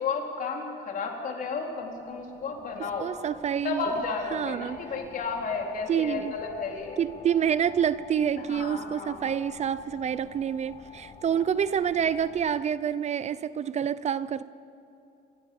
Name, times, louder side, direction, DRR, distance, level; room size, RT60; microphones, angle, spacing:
voice 1, 0.0-3.1 3.6-7.0 8.4-9.3, left 4 dB, 55° left, 1 dB, 4.0 m, -33 dB
sound 1, 1.5-12.6, left 5 dB, 35° left, 2.1 m, -49 dB
voice 2, 2.8-3.9 4.3-4.8 5.9-6.3 7.0-14.4, right 8 dB, 40° right, 16 dB, 0.6 m, -27 dB
26.5 x 16.0 x 7.1 m, 2.7 s
cardioid pair, 110°, 17 cm